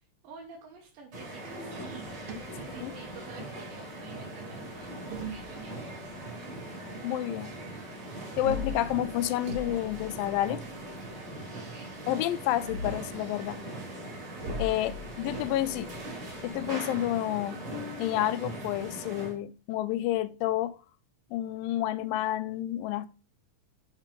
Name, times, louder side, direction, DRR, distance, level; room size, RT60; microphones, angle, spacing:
voice 1, 0.2-6.1 11.5-11.9, right 5 dB, 85° right, 2.8 m, -50 dB
sound 1, 1.1-19.4, right 1 dB, 40° right, 3.1 m, -41 dB
sound 2, 1.9-3.3 4.6-6.1 8.3-10.9 12.4-13.2 14.4-16.7, left 1 dB, 70° right, 1.5 m, -40 dB
voice 2, 7.0-7.5 8.4-10.6 12.1-13.6 14.6-15.9 16.4-20.8 21.3-23.1, left 13 dB, 90° left, 2.3 m, -30 dB
7.3 x 3.7 x 5.2 m
omnidirectional pair, 4.0 m